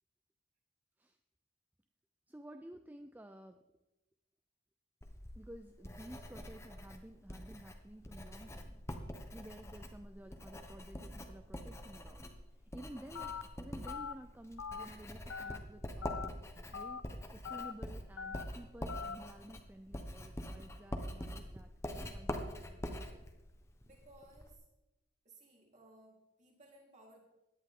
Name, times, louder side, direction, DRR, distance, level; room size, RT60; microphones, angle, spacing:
voice 1, 2.3-3.6 5.4-8.8 9.3-12.3 12.5-16.3 16.7-23.2, right 1 dB, 10° right, 7 dB, 0.4 m, -53 dB
Writing, 5.0-24.5, equal, 15° left, 1.0 m, -45 dB
Telephone, 13.1-13.4 13.9-14.1 14.6-14.8 15.3-15.6 16.0-16.3 16.7-17.0 17.4-17.7 18.2-18.4 18.9-19.1, left 6 dB, 85° left, 0.7 m, -42 dB
voice 2, 23.8-24.7 25.2-27.2, right 1 dB, 35° right, -3 dB, 4.0 m, -61 dB
16.5 x 11.0 x 3.8 m, 0.99 s
head